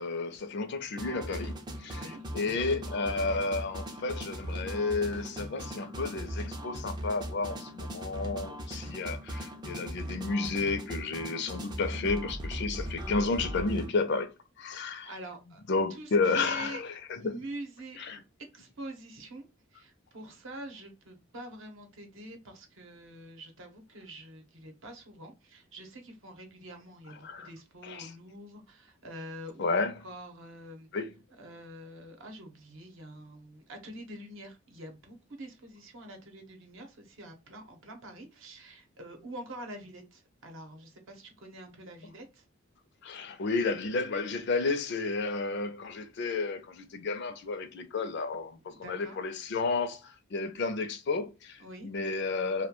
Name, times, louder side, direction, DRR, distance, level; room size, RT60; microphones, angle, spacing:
voice 1, 0.0-14.3 14.6-15.1 15.7-17.4 18.0-18.2 27.2-27.5 27.8-28.1 29.6-30.0 30.9-31.1 43.0-52.7, left 3 dB, 55° left, 0.4 m, -32 dB
sound 1, 1.0-13.9, equal, 20° right, 0.3 m, -39 dB
voice 2, 1.8-2.2 15.0-15.6 15.9-16.8 17.2-30.9 31.4-42.4 48.8-49.2 51.6-51.9, right 1 dB, 65° right, 0.7 m, -46 dB
2.2 x 2.1 x 2.9 m
head